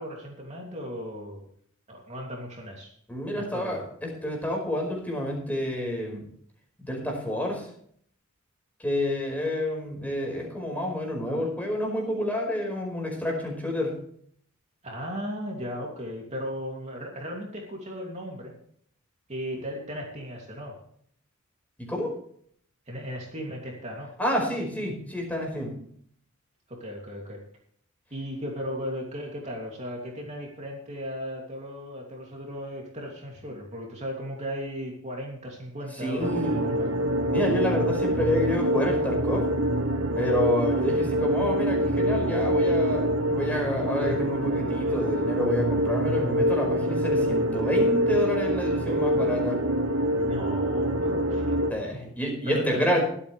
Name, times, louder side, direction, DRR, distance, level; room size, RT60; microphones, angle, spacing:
voice 1, 0.0-1.4 1.9-2.9 3.3-3.8 14.8-18.6 19.3-20.8 22.9-24.1 26.7-27.4 28.1-36.9 40.8-40.9 50.1-51.4 52.4-53.0, equal, 35° right, -1 dB, 2.7 m, -36 dB
voice 2, 3.1-6.3 6.8-7.7 8.8-13.9 21.9-22.1 24.2-25.7 36.0-36.6 37.3-39.5 40.1-49.6 51.7-53.0, left 1 dB, 10° left, 0 dB, 5.1 m, -29 dB
sound 1, 36.2-51.7, equal, 80° right, 1.2 m, -25 dB
23.5 x 8.5 x 3.3 m, 0.62 s
head